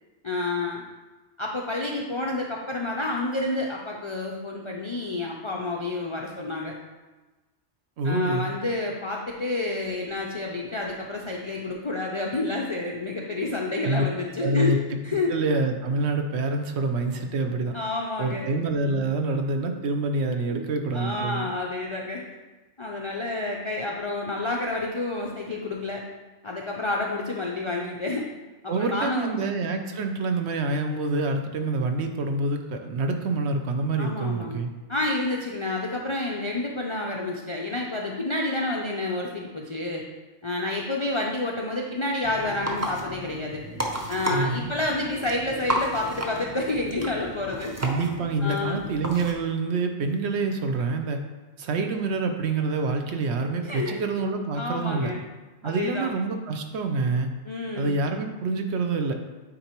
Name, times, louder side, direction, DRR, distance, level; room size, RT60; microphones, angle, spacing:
voice 1, 0.2-0.8 1.4-6.7 8.0-14.8 15.0-15.3 17.7-18.5 20.5-20.6 20.9-22.2 22.8-26.0 26.4-28.3 28.6-29.4 34.0-34.6 34.9-40.0 40.4-43.6 44.1-47.8 48.4-48.9 53.6-54.0 54.5-55.2 55.6-56.1 57.4-58.0, left 2 dB, 50° left, -2 dB, 0.3 m, -29 dB
voice 2, 8.0-8.5 13.8-14.0 14.4-17.8 18.2-21.5 28.7-34.7 44.3-44.7 47.8-51.2 51.6-55.1 55.6-57.3 57.8-59.1, right 3 dB, 70° right, 5 dB, 0.9 m, -26 dB
sound 1, 42.2-49.3, equal, 20° right, 0.5 m, -33 dB
8.7 x 4.0 x 2.9 m, 1.2 s
omnidirectional pair, 1.2 m